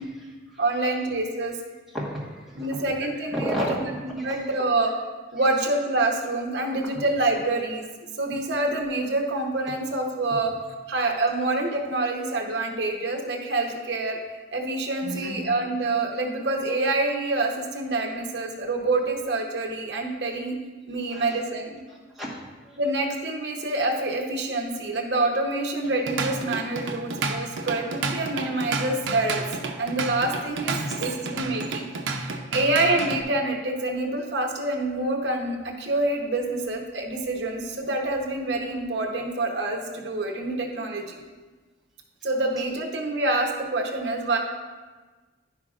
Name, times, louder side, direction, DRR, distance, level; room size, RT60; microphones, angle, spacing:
voice 1, 0.0-0.6 1.9-3.7 4.2-4.4 10.3-10.4 15.0-15.3 21.1-21.4 21.9-22.8 30.7-30.9, equal, ahead, -6 dB, 1.3 m, -34 dB
voice 2, 0.6-1.6 2.6-4.9 5.3-7.8 8.2-10.5 10.9-14.2 14.5-20.6 20.9-21.8 22.8-29.4 29.8-31.9 32.2-41.2 42.2-44.4, right 2 dB, 60° right, 1 dB, 0.9 m, -26 dB
Drum kit / Drum, 25.8-33.2, right 3 dB, 80° right, 0.6 m, -31 dB
10.5 x 5.7 x 2.4 m, 1.3 s
head